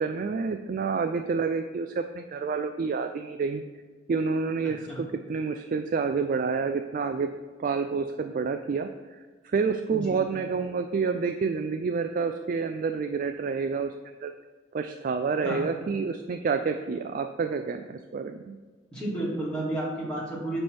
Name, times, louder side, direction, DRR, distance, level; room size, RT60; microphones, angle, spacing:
voice 1, 0.0-3.6 4.1-7.3 7.6-13.9 14.2-14.3 14.7-18.6, right 5 dB, 50° right, 7 dB, 0.3 m, -29 dB
voice 2, 9.9-10.2 15.4-15.7 18.9-20.6, right 1 dB, 5° left, -7 dB, 2.3 m, -31 dB
9.4 x 3.3 x 6.0 m, 1.4 s
head